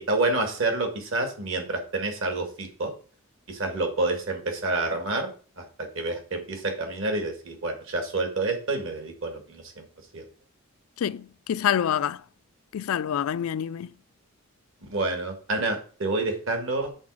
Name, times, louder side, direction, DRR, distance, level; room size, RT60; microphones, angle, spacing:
voice 1, 0.0-2.9 3.5-5.3 5.6-9.9 10.1-10.2 14.8-16.9, right 2 dB, 60° right, 1.8 m, -28 dB
voice 2, 11.0-12.2 12.7-13.9, left 9 dB, 75° left, 0.3 m, -27 dB
7.7 x 4.1 x 6.1 m
head